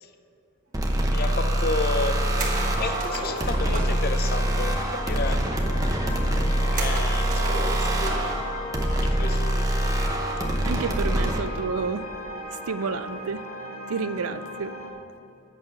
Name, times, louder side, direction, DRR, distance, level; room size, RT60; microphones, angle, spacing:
sound 1, 0.7-11.4, right 1 dB, 15° right, 0.8 m, -25 dB
sound 2, 1.1-14.9, left 2 dB, 90° left, 1.7 m, -37 dB
voice 1, 1.1-5.4 6.7-8.4 9.0-9.8, left 3 dB, 45° left, 8 dB, 0.6 m, -32 dB
sound 3, 2.4-4.0 6.8-8.4 8.7-8.8 10.4-10.7, right 2 dB, 35° right, 1.5 m, -34 dB
voice 2, 10.6-12.1 12.5-13.5 13.9-14.7, right 5 dB, 85° right, 13 dB, 0.5 m, -30 dB
8.6 x 6.5 x 8.4 m, 2.6 s
head